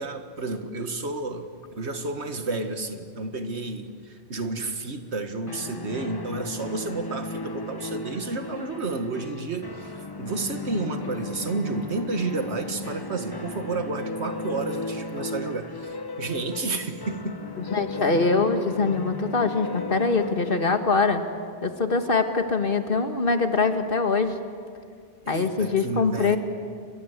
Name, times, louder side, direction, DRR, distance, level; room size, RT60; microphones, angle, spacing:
voice 1, 0.0-17.5 25.2-26.4, right 3 dB, 85° right, 7 dB, 2.0 m, -31 dB
sound 1, 5.5-22.2, left 2 dB, 20° left, 1.0 m, -36 dB
voice 2, 17.7-21.2 21.6-24.4 25.3-26.4, left 4 dB, 55° left, 7 dB, 1.9 m, -23 dB
30.0 x 22.5 x 8.2 m, 2.1 s
omnidirectional pair, 1.1 m